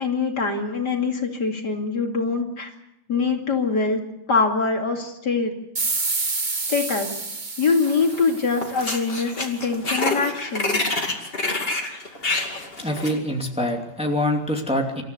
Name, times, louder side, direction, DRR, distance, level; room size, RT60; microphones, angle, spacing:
voice 1, 0.0-2.7 3.1-4.0 4.3-5.5 6.7-7.1 7.6-10.8, left 4 dB, 60° left, 2 dB, 3.2 m, -23 dB
sound 1, 5.8-9.1, right 3 dB, 25° right, 1.3 m, -28 dB
sound 2, 7.8-8.3 8.6-13.2, left 2 dB, 30° left, 2.8 m, -27 dB
voice 2, 12.8-15.0, left 1 dB, 5° right, 1 dB, 2.5 m, -25 dB
27.5 x 14.0 x 8.3 m, 0.85 s
omnidirectional pair, 2.0 m